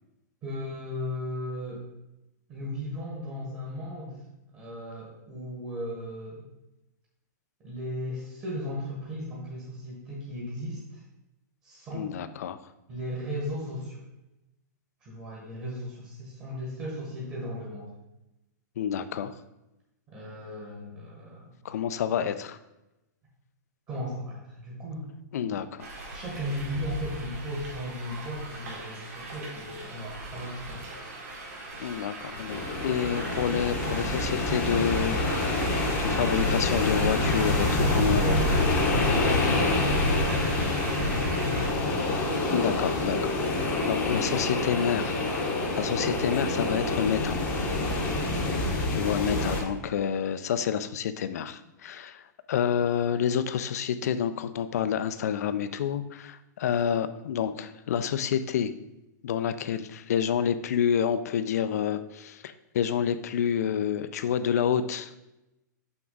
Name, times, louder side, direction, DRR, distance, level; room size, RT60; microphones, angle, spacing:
voice 1, 0.4-1.8 2.5-4.2 4.5-6.5 7.6-11.0 11.6-12.1 12.9-14.0 15.0-17.9 20.1-21.6 23.9-25.1 25.4-25.6 26.1-30.8 37.7-42.1, equal, 20° right, -4 dB, 1.4 m, -36 dB
voice 2, 11.9-12.6 18.8-19.4 21.6-22.6 25.3-25.9 31.7-35.6 36.0-38.4 42.5-45.2 45.7-47.4 48.4-48.5 48.9-52.2 52.5-58.7 59.2-65.2, left 8 dB, 55° left, 12 dB, 0.5 m, -28 dB
sound 1, 25.8-41.7, equal, 50° right, 2.1 m, -33 dB
sound 2, 32.3-49.6, left 2 dB, 15° left, 0.9 m, -27 dB
6.0 x 5.9 x 3.9 m, 0.93 s
hypercardioid pair, 175°, 10 cm